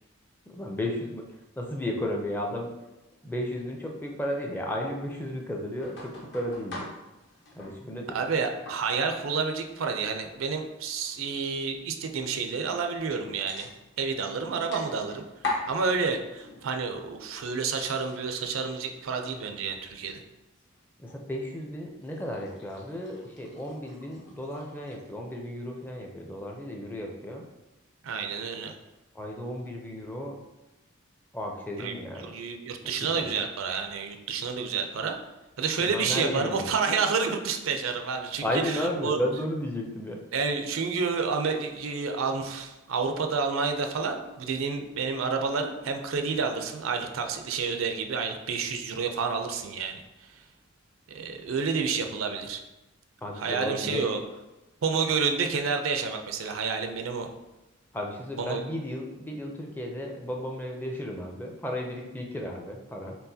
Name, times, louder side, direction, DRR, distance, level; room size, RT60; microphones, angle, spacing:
voice 1, 0.5-1.2 1.6-2.7 3.2-6.9 7.5-8.1 21.0-27.4 29.1-30.4 31.3-32.3 33.1-33.3 35.8-36.7 38.4-40.2 53.2-54.0 57.9-63.2, left 1 dB, 10° left, 0 dB, 0.4 m, -34 dB
sound 1, 5.8-7.8 8.1-9.3 9.6-9.8 10.3-11.5 12.0-12.1 12.6-13.1 13.5-14.2 14.7-15.8 16.4-16.8 17.2-18.9 19.2-20.1 20.3-21.2 22.0-25.1, left 2 dB, 60° left, 0.9 m, -41 dB
voice 2, 8.1-13.7 14.0-15.2 15.7-20.2 28.0-28.7 31.8-35.2 35.6-39.2 40.3-50.3 51.1-52.6 53.4-54.2 54.8-57.3 58.4-58.6, right 5 dB, 80° right, 5 dB, 0.5 m, -29 dB
4.5 x 3.6 x 2.7 m, 1.0 s
head